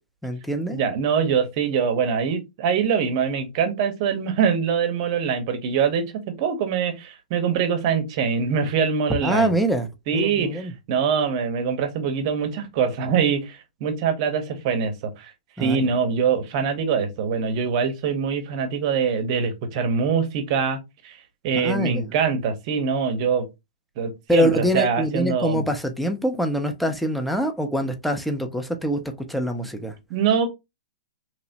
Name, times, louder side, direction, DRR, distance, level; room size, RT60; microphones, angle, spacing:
voice 1, 0.2-0.8 9.2-10.7 15.6-15.9 21.5-22.1 24.3-29.0 29.3-29.9, right 1 dB, ahead, 0.5 m, -24 dB
voice 2, 0.7-9.5 10.1-15.3 15.6-20.8 21.0-21.2 21.4-23.5 24.0-25.6 30.1-30.5, right 6 dB, 45° right, 0.7 m, -23 dB
3.0 x 2.0 x 2.7 m
hypercardioid pair, 120°, 4 cm